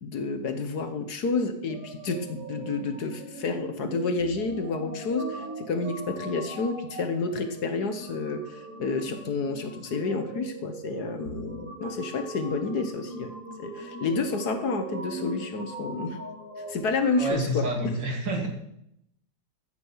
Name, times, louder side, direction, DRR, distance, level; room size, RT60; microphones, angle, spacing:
voice 1, 0.0-13.3 13.6-16.2 16.6-17.9, left 3 dB, 60° left, 8 dB, 1.7 m, -30 dB
sound 1, 1.7-17.3, right 2 dB, 45° right, 6.5 m, -40 dB
voice 2, 17.2-18.5, equal, 70° right, 1 dB, 3.2 m, -28 dB
14.5 x 9.8 x 5.7 m, 0.78 s
omnidirectional pair, 2.0 m